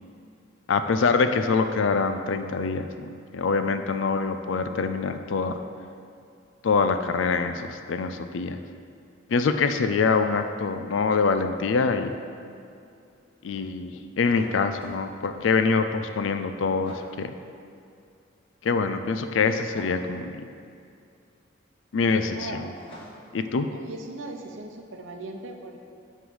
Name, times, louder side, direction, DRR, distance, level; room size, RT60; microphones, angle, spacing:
voice 1, 0.7-5.6 6.6-8.6 9.3-12.1 13.4-17.3 18.6-20.4 21.9-22.6 23.3-23.7, left 4 dB, 80° left, 8 dB, 0.4 m, -25 dB
sound 1, 14.3-15.0 16.8-17.2 19.7-20.1 22.8-23.4, equal, 30° left, 1.3 m, -45 dB
voice 2, 22.3-22.7 23.7-25.9, right 2 dB, 85° right, 3 dB, 0.7 m, -39 dB
9.2 x 3.2 x 5.5 m, 2.5 s
head